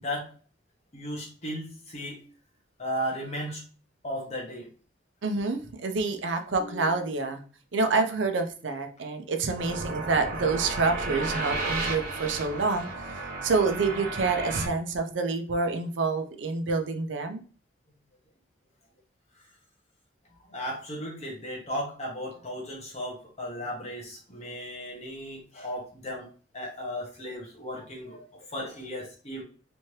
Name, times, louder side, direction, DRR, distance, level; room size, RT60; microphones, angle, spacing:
voice 1, 0.0-0.3 0.9-2.2 2.8-3.6 4.0-4.7 6.5-7.1 12.5-12.6 20.3-26.3 26.5-29.4, equal, 35° left, -1 dB, 1.2 m, -36 dB
voice 2, 5.2-7.4 7.7-12.9 13.4-17.4, right 3 dB, 85° right, 6 dB, 0.6 m, -27 dB
sound 1, 9.6-14.7, right 3 dB, 55° right, 0.9 m, -33 dB
3.4 x 2.9 x 3.1 m, 0.40 s
head